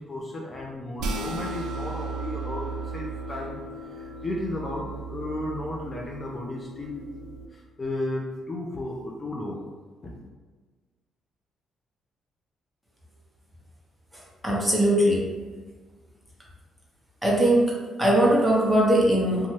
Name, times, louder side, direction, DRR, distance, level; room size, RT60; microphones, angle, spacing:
voice 1, 0.0-7.1 7.5-9.6 10.0-10.1, left 1 dB, 35° left, -2 dB, 0.4 m, -34 dB
sound 1, 1.0-7.5, right 3 dB, 80° right, 0.3 m, -35 dB
voice 2, 14.4-15.3 17.2-19.5, right 1 dB, 5° right, -4 dB, 0.9 m, -20 dB
2.7 x 2.2 x 3.1 m, 1.4 s
cardioid pair, 90°, 0 cm